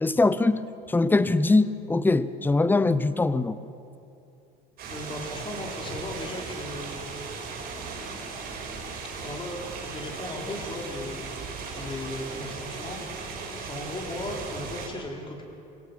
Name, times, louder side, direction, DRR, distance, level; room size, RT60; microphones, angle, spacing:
voice 1, 0.0-3.6, left 3 dB, 10° left, 15 dB, 0.8 m, -22 dB
sound 1, 4.8-14.9, right 4 dB, 50° right, 6.4 m, -37 dB
voice 2, 4.9-7.0 9.0-11.3 11.7-13.2 13.6-15.4, left 1 dB, 25° left, 1 dB, 4.0 m, -37 dB
25.0 x 17.0 x 7.5 m, 2.8 s
supercardioid pair, 110°, 19 cm